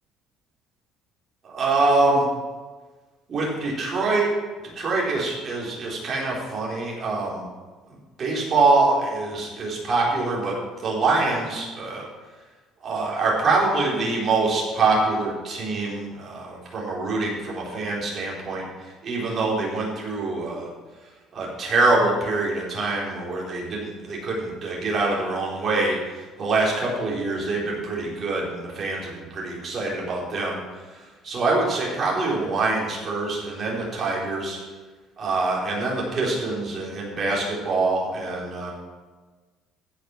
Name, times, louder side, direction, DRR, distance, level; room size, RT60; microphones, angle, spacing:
voice 1, 1.4-2.2 3.3-4.3 4.7-7.4 8.2-10.5 10.8-12.0 12.8-20.7 21.3-30.6 31.2-34.6 35.2-38.7, right 3 dB, 35° right, -3 dB, 3.5 m, -24 dB
15.5 x 6.1 x 6.1 m, 1.3 s
cardioid pair, 155°, 0 cm